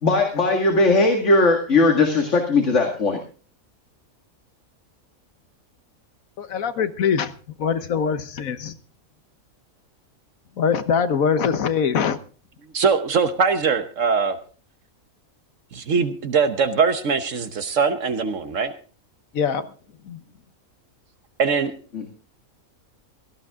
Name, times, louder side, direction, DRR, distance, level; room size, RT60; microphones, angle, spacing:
voice 1, 0.0-3.2 21.9-22.0, left 3 dB, 60° left, 3 dB, 2.3 m, -18 dB
voice 2, 6.4-7.3 7.6-8.7 10.6-12.2 19.3-19.6 20.1-20.2, left 6 dB, 80° left, 12 dB, 1.5 m, -22 dB
voice 3, 12.7-14.4 15.7-18.7 21.4-21.7, right 5 dB, 65° right, 10 dB, 1.4 m, -21 dB
17.0 x 14.5 x 3.6 m, 0.37 s
omnidirectional pair, 1.4 m